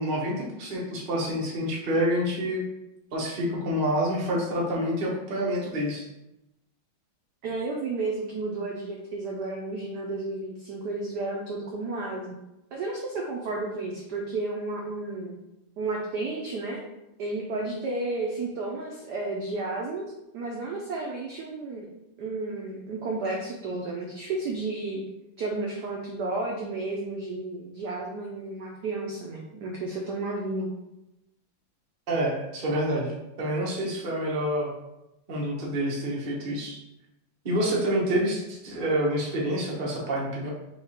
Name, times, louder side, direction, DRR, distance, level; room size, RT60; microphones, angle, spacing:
voice 1, 0.0-2.7 3.1-6.1 32.1-34.7 35.3-36.8 37.4-40.5, equal, 45° right, -3 dB, 0.6 m, -27 dB
voice 2, 7.4-12.4 12.7-15.3 15.8-16.8 17.2-20.1 20.3-21.9 22.2-25.0 25.4-30.7, right 3 dB, 75° right, -1 dB, 0.9 m, -32 dB
4.6 x 2.4 x 4.2 m, 0.92 s
omnidirectional pair, 2.4 m